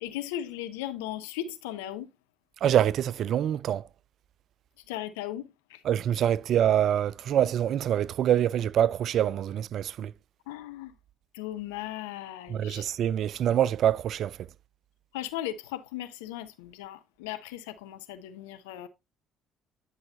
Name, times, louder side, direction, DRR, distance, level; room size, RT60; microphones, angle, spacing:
voice 1, 0.0-2.1 4.9-5.8 10.5-10.9 11.3-12.9 15.1-18.9, left 12 dB, 80° left, 0.7 m, -37 dB
voice 2, 2.6-3.8 5.9-10.1 12.5-14.3, right 10 dB, 60° right, 0.3 m, -25 dB
9.7 x 5.5 x 2.6 m
hypercardioid pair, 50°, 0 cm